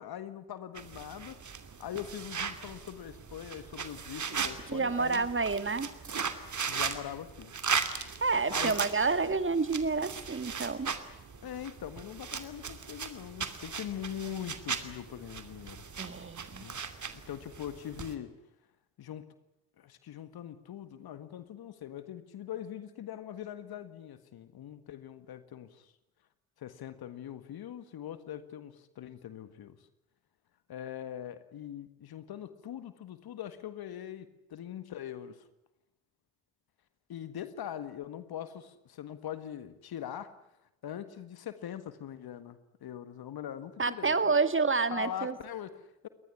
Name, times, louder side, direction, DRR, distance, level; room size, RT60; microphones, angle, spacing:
voice 1, 0.0-5.3 6.7-7.5 8.5-8.7 11.4-15.8 16.5-16.8 17.1-18.3 19.0-19.2 19.8-25.9 26.6-29.9 30.7-35.4 37.1-40.3 40.8-44.3 44.9-46.1, left 10 dB, 65° left, 12 dB, 1.7 m, -42 dB
sound 1, 0.7-18.1, right 6 dB, 45° right, 2.8 m, -38 dB
voice 2, 4.7-5.9 8.2-10.9 16.0-16.7 43.8-45.3, right 4 dB, 30° right, 12 dB, 2.1 m, -29 dB
23.0 x 19.5 x 9.9 m, 0.86 s
hypercardioid pair, 40°, 40 cm